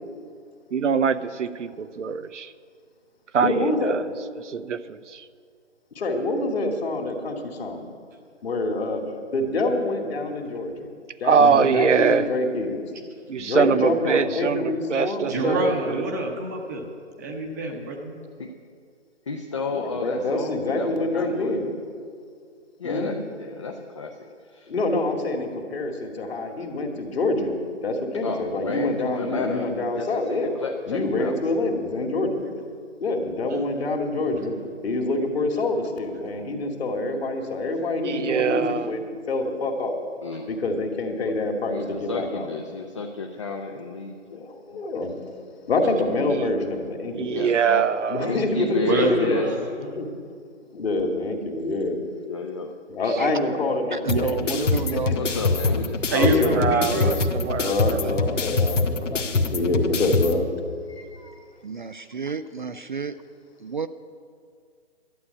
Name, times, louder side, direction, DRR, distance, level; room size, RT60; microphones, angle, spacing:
voice 1, 0.7-2.5 3.3-5.2 11.2-12.3 13.3-16.1 38.0-38.9 46.3-46.5 47.1-48.4 56.3-58.1, right 6 dB, 80° right, 13 dB, 0.8 m, -23 dB
voice 2, 3.4-3.9 6.0-7.9 8.4-9.0 9.3-10.9 11.2-12.9 13.4-15.8 19.7-21.7 22.8-23.1 24.7-27.5 27.8-30.5 30.9-32.4 33.0-34.5 34.8-40.0 40.5-42.5 44.3-45.1 45.7-47.4 48.1-49.4 49.8-50.1 50.7-52.0 52.9-55.3 56.2-57.1 57.6-60.4 60.9-61.0, left 2 dB, 55° left, 2 dB, 2.4 m, -26 dB
voice 3, 11.4-11.8 15.3-16.9 17.2-18.1 48.8-49.6 56.1-57.2, right 1 dB, 15° right, 2 dB, 0.8 m, -26 dB
voice 4, 19.3-21.5 22.8-24.2 24.5-24.7 28.2-29.7 30.0-31.3 40.2-40.5 41.7-44.5 47.3-47.8 48.2-49.5 52.3-52.7 55.1-56.5, left 4 dB, 25° left, 3 dB, 0.5 m, -32 dB
voice 5, 53.9-55.1 56.5-56.6 60.9-63.2 63.6-63.9, right 5 dB, 45° right, 11 dB, 0.4 m, -31 dB
sound 1, 54.1-60.3, left 3 dB, 80° left, 1.4 m, -25 dB
11.5 x 8.1 x 9.5 m, 2.2 s
hypercardioid pair, 155°, 36 cm